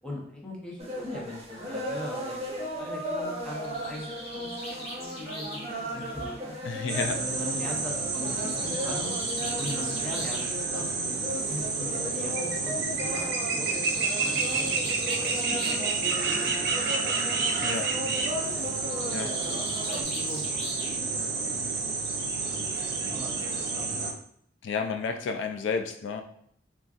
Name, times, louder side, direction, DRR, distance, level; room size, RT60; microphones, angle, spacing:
voice 1, 0.0-2.4 2.8-6.6 7.1-9.1 9.6-11.2 11.5-13.7 14.2-17.0 17.5-17.7 18.0-18.5 19.1-19.6 19.9-22.6 22.9-23.9, left 1 dB, 5° left, -3 dB, 0.7 m, -41 dB
sound 1, 0.8-20.0, equal, 35° right, 0.8 m, -37 dB
Bird, 3.3-7.1 8.2-10.5 11.6-11.7 12.0-12.1 12.4-12.5 13.5-15.9 16.2-16.7 18.8-21.2, equal, 35° left, 1.0 m, -41 dB
voice 2, 6.6-7.2 17.5-17.9 19.1-19.3 24.6-26.2, left 5 dB, 75° left, 6 dB, 0.3 m, -31 dB
sound 2, 6.9-24.1, right 4 dB, 60° right, 0.5 m, -30 dB
3.8 x 2.3 x 2.4 m, 0.67 s
head